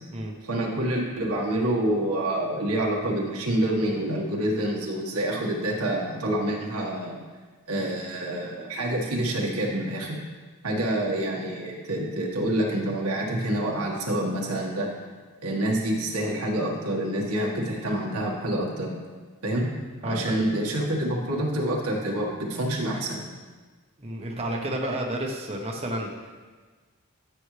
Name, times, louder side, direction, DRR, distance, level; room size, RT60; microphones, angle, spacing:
voice 1, 0.4-7.2 7.7-10.2 10.6-14.9 15.4-18.9 19.4-19.7 20.0-23.2, right 1 dB, 85° right, -1 dB, 1.6 m, -27 dB
voice 2, 20.0-20.3 24.0-26.3, right 1 dB, 25° right, 0 dB, 1.0 m, -31 dB
12.5 x 7.1 x 3.3 m, 1.4 s
head